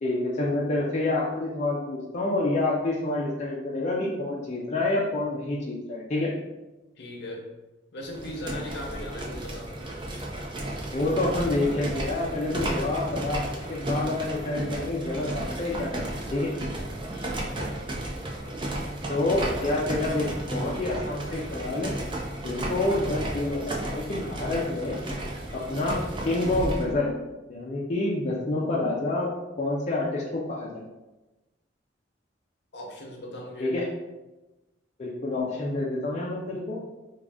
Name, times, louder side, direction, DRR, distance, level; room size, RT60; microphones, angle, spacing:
voice 1, 0.0-6.3 10.9-16.0 16.3-16.5 19.1-21.9 22.4-25.0 25.5-26.0 26.2-27.1 27.5-29.3 29.6-30.8 33.6-33.9 35.0-36.8, left 2 dB, 40° left, -5 dB, 0.5 m, -28 dB
voice 2, 7.0-7.4 7.9-9.7 17.1-17.8 32.7-33.7, left 1 dB, 65° left, 0 dB, 0.8 m, -38 dB
sound 1, 8.0-26.9, right 1 dB, 25° right, 0.5 m, -33 dB
3.7 x 2.3 x 3.6 m, 1.1 s
head